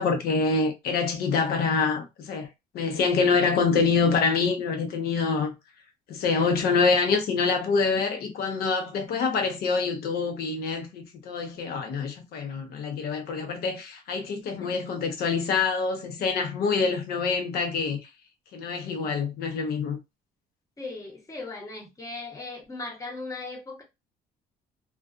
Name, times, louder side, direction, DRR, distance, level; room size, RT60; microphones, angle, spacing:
voice 1, 0.0-2.5 2.7-5.5 6.1-18.1 18.5-20.0, left 4 dB, 65° left, 0.8 m, -26 dB
voice 2, 14.5-14.8 20.8-23.8, left 3 dB, 20° left, 1.0 m, -38 dB
2.3 x 2.3 x 2.4 m
cardioid pair, 110°, 17 cm